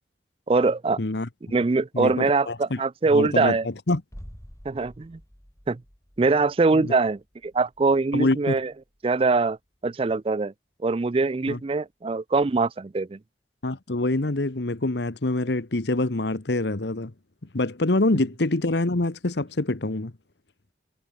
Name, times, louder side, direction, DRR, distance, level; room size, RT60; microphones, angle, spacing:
voice 1, 0.5-1.0 1.5-3.7 4.7-5.2 5.7-5.8 6.2-8.7 9.0-9.6 9.8-10.5 10.8-13.2, right 3 dB, 30° right, 0.4 m, -23 dB
voice 2, 1.0-1.3 1.9-2.8 3.1-4.0 6.7-6.9 8.1-8.6 11.5-11.6 13.6-17.1 17.5-20.1, left 2 dB, 65° left, 1.2 m, -25 dB
sound 1, 4.1-9.8 10.1-10.2, equal, 15° left, 3.2 m, -49 dB
head